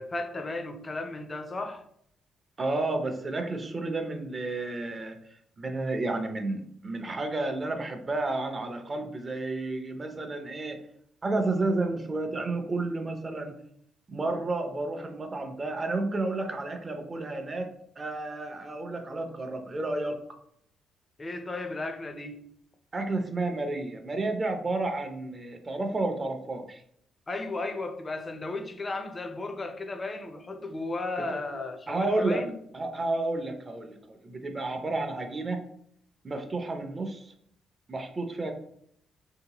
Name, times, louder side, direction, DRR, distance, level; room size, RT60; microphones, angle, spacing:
voice 1, 0.0-1.8 21.2-22.4 27.3-32.6, left 2 dB, 30° left, 0.5 m, -35 dB
voice 2, 2.6-5.2 5.6-10.8 11.2-13.5 14.1-17.7 18.0-20.2 22.9-26.8 31.3-31.4 31.9-32.4 32.7-35.6 36.2-37.3 37.9-38.5, right 2 dB, 30° right, 0.5 m, -31 dB
3.0 x 2.8 x 2.9 m
cardioid pair, 90°, 0 cm